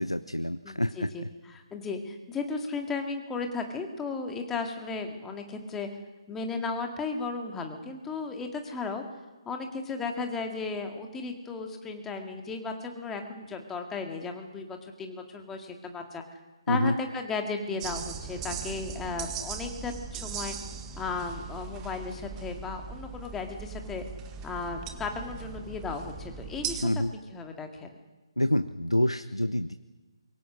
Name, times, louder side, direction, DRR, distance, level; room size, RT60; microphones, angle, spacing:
voice 1, 0.0-1.1 16.7-16.9 26.8-27.1 28.4-29.7, left 1 dB, 90° left, 12 dB, 0.9 m, -27 dB
voice 2, 0.6-5.9 6.3-9.0 9.5-16.2 16.7-20.6 21.0-24.0 24.4-27.9, left 4 dB, 10° left, 4 dB, 2.1 m, -35 dB
sound 1, 17.8-26.9, right 6 dB, 15° right, 1.5 m, -39 dB
24.5 x 23.0 x 6.4 m, 1.2 s
figure-of-eight pair, 145°, 3 cm